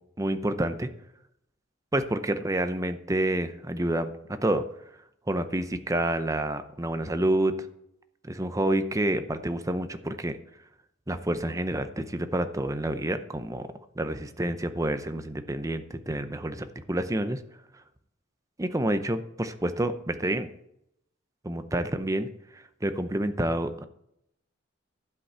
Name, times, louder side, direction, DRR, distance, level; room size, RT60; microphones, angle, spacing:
voice 1, 0.2-0.9 1.9-4.7 5.3-7.6 8.2-10.4 11.1-17.4 18.6-20.5 21.4-23.8, right 1 dB, 15° right, 10 dB, 0.6 m, -28 dB
12.0 x 5.3 x 8.0 m, 0.77 s
head